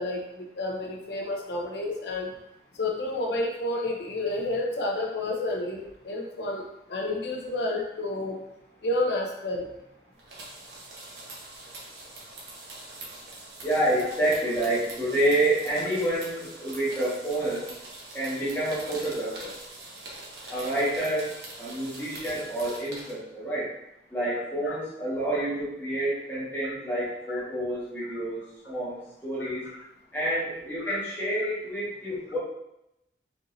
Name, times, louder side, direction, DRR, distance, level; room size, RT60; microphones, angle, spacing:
voice 1, 0.0-2.3 2.7-8.4 8.8-9.7 24.7-24.8 27.3-27.4 30.9-31.0, left 2 dB, 75° left, 0 dB, 0.7 m, -30 dB
sound 1, 10.2-23.1, right 2 dB, 75° right, 1.0 m, -43 dB
voice 2, 13.6-17.7 18.1-19.5 20.5-21.3 21.6-23.7 24.1-29.7 30.1-32.4, right 1 dB, 10° left, -10 dB, 1.4 m, -28 dB
4.5 x 3.8 x 2.6 m, 0.84 s
head